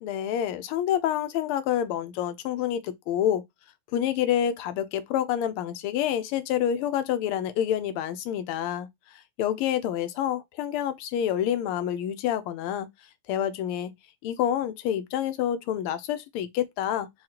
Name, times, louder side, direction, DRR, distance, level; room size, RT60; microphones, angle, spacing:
voice 1, 0.0-3.4 3.9-12.9 13.3-13.9 14.2-17.1, left 10 dB, 85° left, 1.5 m, -28 dB
4.8 x 2.3 x 2.8 m
omnidirectional pair, 2.4 m